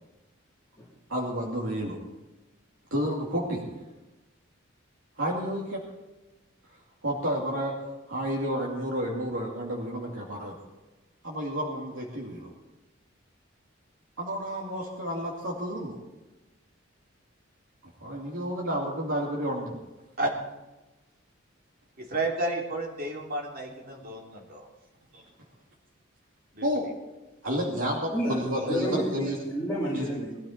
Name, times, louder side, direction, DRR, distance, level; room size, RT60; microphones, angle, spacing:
voice 1, 1.1-2.0 2.9-3.6 5.2-5.8 7.0-7.7 8.1-10.6 11.2-12.5 14.2-16.0 18.0-19.7 25.1-25.2 26.6-26.9 27.4-29.4 29.9-30.1, equal, 75° right, -3 dB, 2.6 m, -30 dB
voice 2, 22.0-24.6 26.5-26.7, right 2 dB, 45° right, -1 dB, 3.6 m, -31 dB
voice 3, 28.1-30.4, right 1 dB, 15° left, -9 dB, 3.6 m, -30 dB
20.5 x 13.0 x 4.4 m, 1.1 s
head